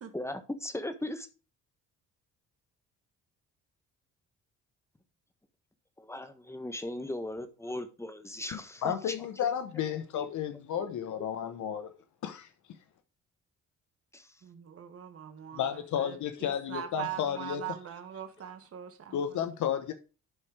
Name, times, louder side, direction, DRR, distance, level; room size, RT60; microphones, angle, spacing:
voice 1, 0.1-1.3 6.0-9.1 9.4-9.5 10.1-10.3 10.8-11.5 14.1-14.3, left 1 dB, 10° left, 1.4 m, -38 dB
voice 2, 8.5-11.9 12.2-12.5 15.5-17.6 19.1-19.9, left 9 dB, 75° left, 1.1 m, -32 dB
voice 3, 14.4-19.4, right 10 dB, 50° right, 1.5 m, -42 dB
11.5 x 4.4 x 5.0 m
cardioid pair, 90°, 30 cm